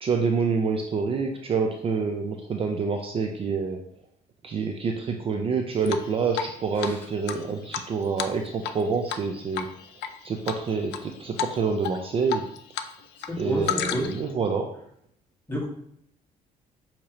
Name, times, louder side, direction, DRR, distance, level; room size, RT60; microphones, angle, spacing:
voice 1, 0.0-3.8 4.4-9.7 10.2-12.4 13.4-14.7, right 5 dB, 35° right, 3 dB, 0.4 m, -27 dB
Drip, 5.9-6.5 6.8-6.9 7.3-8.8 9.1-9.3 9.5-10.1 10.5-11.0 11.4-11.5 11.8-12.9 13.2-14.3, left 9 dB, 85° left, 0.4 m, -31 dB
voice 2, 13.3-14.1 15.5-15.7, equal, 15° left, -4 dB, 1.6 m, -29 dB
6.3 x 2.9 x 2.9 m, 0.71 s
cardioid pair, 110°, 17 cm